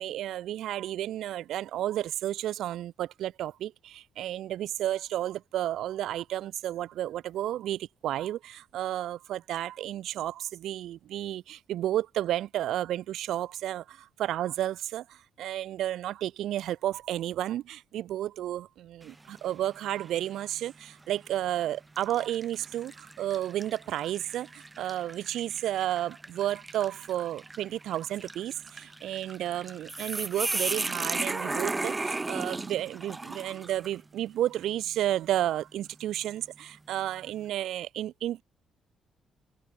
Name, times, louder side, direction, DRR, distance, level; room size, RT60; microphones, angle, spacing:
voice 1, 0.0-38.4, right 12 dB, 70° right, 0.5 m, -32 dB
sound 1, 19.0-19.5 20.0-20.2 21.1-21.3 22.0-34.0, right 2 dB, 10° right, 0.7 m, -36 dB
cardioid pair, 180°, 0 cm